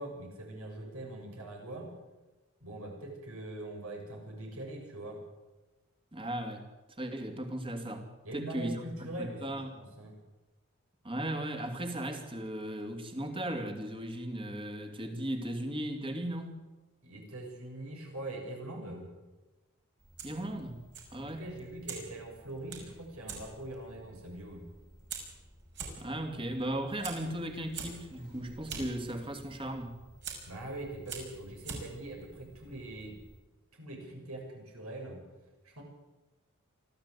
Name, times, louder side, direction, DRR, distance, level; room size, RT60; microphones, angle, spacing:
voice 1, 0.0-1.9 2.6-5.2 8.2-10.1 17.0-19.1 21.2-24.7 30.5-33.2 33.7-35.2 35.6-35.8, right 1 dB, 75° right, 1 dB, 7.0 m, -42 dB
voice 2, 6.1-6.6 7.0-8.9 9.2-9.7 11.0-16.6 20.2-21.5 26.0-30.0, right 1 dB, 25° right, 5 dB, 2.7 m, -37 dB
Fire, 20.0-33.4, right 4 dB, 55° right, 5.8 m, -47 dB
25.0 x 14.5 x 8.4 m, 1.1 s
head